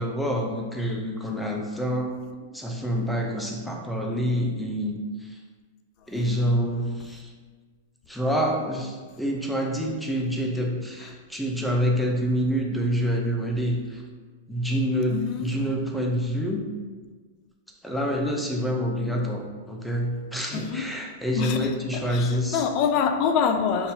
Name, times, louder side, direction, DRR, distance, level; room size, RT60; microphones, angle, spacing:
voice 1, 0.0-2.2 2.5-5.4 6.1-7.3 8.1-14.0 14.5-16.6 17.8-22.6, equal, ahead, 0 dB, 0.6 m, -27 dB
voice 2, 6.0-6.3 7.0-7.1 11.0-11.2 15.1-15.5 20.5-20.9 21.4-23.9, left 7 dB, 45° left, 6 dB, 0.4 m, -26 dB
5.9 x 2.6 x 2.7 m, 1.4 s
hypercardioid pair, 115°, 0 cm